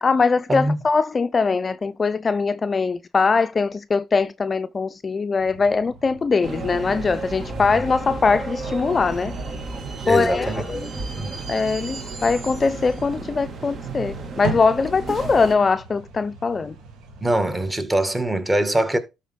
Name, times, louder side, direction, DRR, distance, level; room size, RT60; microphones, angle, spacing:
voice 1, 0.0-9.3 10.1-10.9 11.5-16.8, left 4 dB, 35° left, 0.4 m, -21 dB
sound 1, 5.4-17.7, right 3 dB, 70° right, 2.0 m, -41 dB
sound 2, 6.4-15.5, right 3 dB, 50° right, 2.1 m, -33 dB
voice 2, 10.0-10.6 10.9-11.4 17.2-19.0, right 1 dB, 15° right, 1.8 m, -23 dB
12.5 x 4.3 x 3.6 m
supercardioid pair, 65°, 0 cm